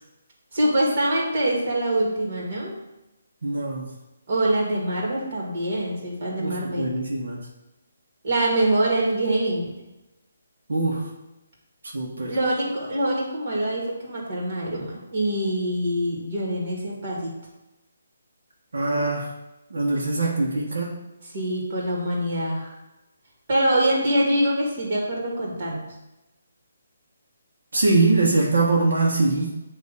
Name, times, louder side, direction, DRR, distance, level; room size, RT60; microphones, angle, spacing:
voice 1, 0.5-2.7 4.3-6.9 8.2-9.7 12.3-17.3 21.3-22.7 23.5-25.9, right 1 dB, 40° right, -2 dB, 2.1 m, -24 dB
voice 2, 3.4-3.9 6.4-7.4 10.7-11.0 11.9-12.3 18.7-19.3 19.7-20.9 27.7-29.6, right 3 dB, 85° right, -2 dB, 1.4 m, -22 dB
8.4 x 3.0 x 5.0 m, 0.98 s
hypercardioid pair, 170°, 0 cm